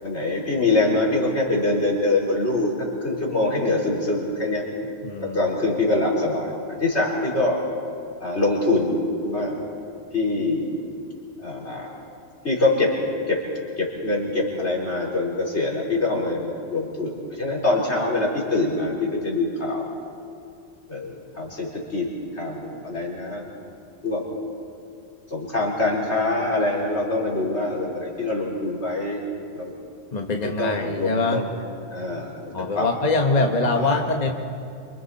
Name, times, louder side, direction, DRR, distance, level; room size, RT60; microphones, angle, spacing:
voice 1, 0.0-4.6 5.2-7.6 8.2-9.6 10.1-10.7 11.4-11.9 12.4-12.9 13.3-13.4 13.8-19.9 20.9-23.4 24.0-24.2 25.3-29.2 29.5-29.7 30.4-31.5 31.9-32.9 33.3-34.1, left 2 dB, 75° left, -4 dB, 4.7 m, -24 dB
voice 2, 5.0-5.4 30.1-31.4 32.5-34.3, left 3 dB, 40° left, 3 dB, 1.3 m, -23 dB
28.5 x 25.5 x 4.3 m, 2.5 s
omnidirectional pair, 1.1 m